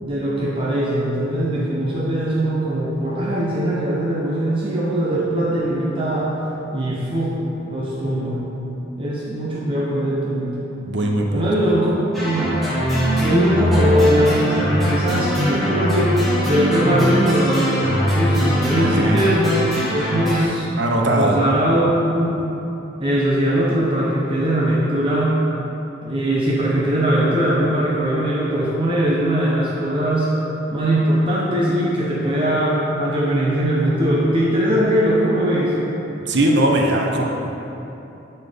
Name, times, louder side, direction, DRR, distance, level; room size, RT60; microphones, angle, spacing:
voice 1, 0.0-6.4 6.7-7.4 7.7-8.4 9.0-10.5 11.3-11.9 12.2-12.6 13.1-16.2 16.4-19.4 19.9-20.6 21.1-22.4 23.0-25.4 26.0-30.3 30.7-35.8, right 1 dB, 25° right, -6 dB, 0.9 m, -20 dB
voice 2, 10.8-11.5 18.7-19.2 20.8-21.4 36.3-37.3, right 1 dB, 60° right, 1 dB, 0.9 m, -19 dB
sound 1, 12.1-20.4, equal, ahead, 1.7 m, -21 dB
11.0 x 4.5 x 5.1 m, 3.0 s
head